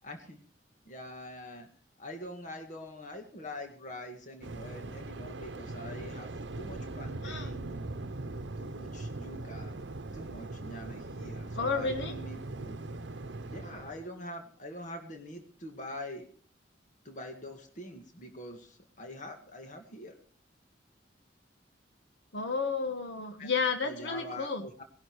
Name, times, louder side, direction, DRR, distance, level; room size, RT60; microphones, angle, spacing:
voice 1, 0.0-0.4 0.9-1.7 2.0-7.8 8.6-9.8 10.1-12.8 13.5-16.3 17.0-20.2 23.4-23.5 23.8-24.8, left 1 dB, 45° left, 5 dB, 2.0 m, -44 dB
Waves surf, 4.4-14.1, right 2 dB, 75° right, 0.9 m, -40 dB
voice 2, 11.6-12.2 22.3-24.7, left 4 dB, 75° left, 6 dB, 1.5 m, -32 dB
19.0 x 11.5 x 4.8 m, 0.42 s
head